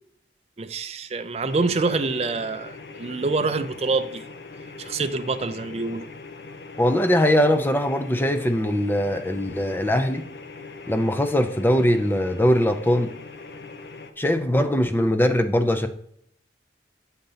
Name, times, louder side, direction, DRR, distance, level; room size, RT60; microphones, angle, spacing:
voice 1, 0.6-4.2 4.8-6.1, right 3 dB, 35° right, 0.5 m, -26 dB
sound 1, 1.5-14.1, left 3 dB, 60° left, 0.7 m, -41 dB
voice 2, 6.8-10.2 10.9-13.1 14.2-15.9, equal, 10° left, 0.5 m, -21 dB
8.1 x 4.0 x 5.6 m
head